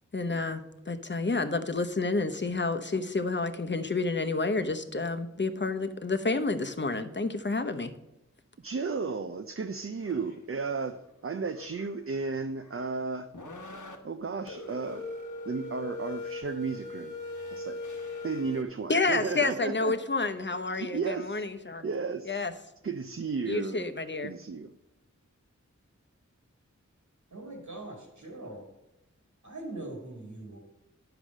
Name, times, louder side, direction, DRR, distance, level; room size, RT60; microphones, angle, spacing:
voice 1, 0.1-7.9 18.9-21.9 22.2-22.5 23.4-24.3, left 3 dB, 40° left, 8 dB, 0.8 m, -29 dB
voice 2, 8.6-13.3 14.0-15.1 15.5-17.1 17.5-17.8 18.2-19.9 20.7-21.4 21.8-22.5 22.8-23.9 24.2-24.7, right 4 dB, 50° right, 8 dB, 0.5 m, -34 dB
sound 1, 10.0-10.4 10.8-11.1 11.4-13.0 13.3-14.0 14.5-18.6, left 2 dB, 85° left, 1.2 m, -40 dB
voice 3, 27.3-28.7 29.4-30.6, right 2 dB, 85° right, 0 dB, 2.1 m, -41 dB
10.5 x 4.9 x 6.3 m, 0.92 s
wide cardioid pair, 50°, 30 cm